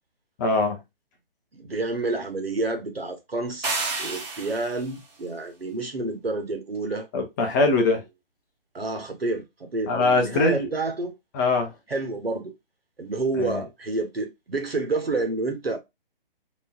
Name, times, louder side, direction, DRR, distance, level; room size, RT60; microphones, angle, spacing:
voice 1, 0.4-0.8 7.1-8.0 9.9-10.7 11.3-11.7 13.4-13.6, left 3 dB, 20° left, 0.7 m, -22 dB
voice 2, 1.5-7.1 8.7-11.1 11.9-12.5 13.0-15.8, right 3 dB, 85° right, 1.4 m, -29 dB
sound 1, 3.6-4.9, right 3 dB, 45° right, 1.3 m, -30 dB
3.5 x 3.0 x 2.3 m
figure-of-eight pair, 140°, 29 cm